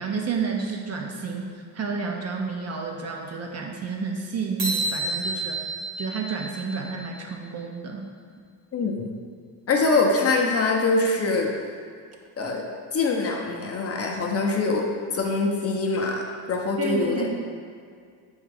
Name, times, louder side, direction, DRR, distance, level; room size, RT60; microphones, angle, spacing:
voice 1, 0.0-5.6 6.0-8.1 16.8-17.3, right 4 dB, 40° right, 1 dB, 0.4 m, -30 dB
sound 1, 4.6-7.2, right 2 dB, 80° right, 1.4 m, -30 dB
voice 2, 9.7-11.5 12.4-12.6 12.9-14.9 15.1-17.3, left 3 dB, 35° left, 0 dB, 0.6 m, -23 dB
4.1 x 3.6 x 3.3 m, 2.1 s
cardioid pair, 95°, 42 cm